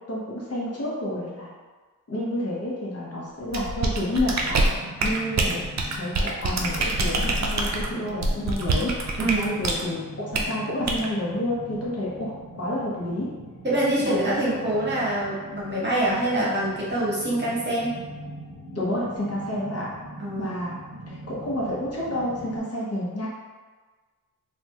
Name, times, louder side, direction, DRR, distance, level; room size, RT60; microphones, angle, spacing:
voice 1, 0.1-1.5 2.1-4.7 5.0-5.7 6.0-9.0 9.4-13.3 14.0-14.4 17.3-17.4 18.8-19.9 20.4-23.3, left 1 dB, 45° left, -5 dB, 0.7 m, -29 dB
sound 1, 3.5-9.8 10.3-10.5 10.9-11.1, right 2 dB, 55° right, 0.4 m, -25 dB
sound 2, 4.1-22.6, equal, 30° left, 1.1 m, -42 dB
voice 2, 9.2-9.5 13.6-18.0 20.2-20.6, right 1 dB, 30° right, -8 dB, 0.9 m, -25 dB
3.2 x 2.1 x 2.8 m, 1.4 s
wide cardioid pair, 140°, 34 cm